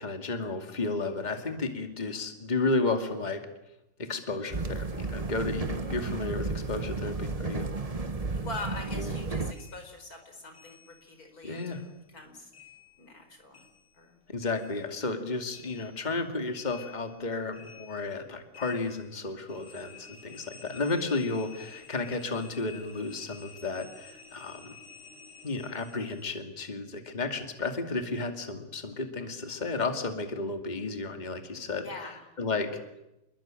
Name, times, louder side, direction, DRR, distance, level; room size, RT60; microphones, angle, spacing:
voice 1, 0.0-3.5 4.0-7.7 8.9-9.1 11.4-11.8 14.3-24.7 25.4-32.8, left 3 dB, 20° left, 6 dB, 2.4 m, -33 dB
sound 1, 4.5-9.5, right 3 dB, 20° right, 1.1 m, -33 dB
voice 2, 8.4-12.5 13.0-13.6 14.0-14.2 31.8-32.3, left 2 dB, 40° left, 6 dB, 5.2 m, -43 dB
sound 2, 8.5-11.3 11.5-14.3 14.5-26.3, left 6 dB, 80° left, 4.9 m, -52 dB
28.0 x 21.5 x 9.0 m, 0.90 s
omnidirectional pair, 2.3 m